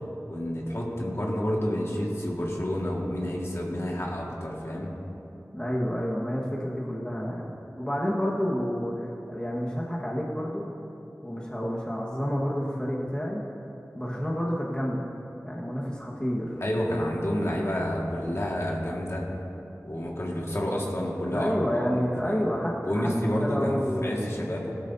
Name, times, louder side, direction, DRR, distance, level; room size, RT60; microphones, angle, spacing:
voice 1, 0.3-4.9 16.6-19.3 19.8-22.4 22.8-24.7, equal, 50° left, -3 dB, 1.9 m, -29 dB
voice 2, 5.5-10.7 11.2-13.4 13.9-15.1 15.4-16.6 21.3-23.1 23.4-24.4, equal, 15° left, -4 dB, 1.6 m, -29 dB
17.0 x 12.5 x 2.8 m, 2.9 s
wide cardioid pair, 50°, 6 cm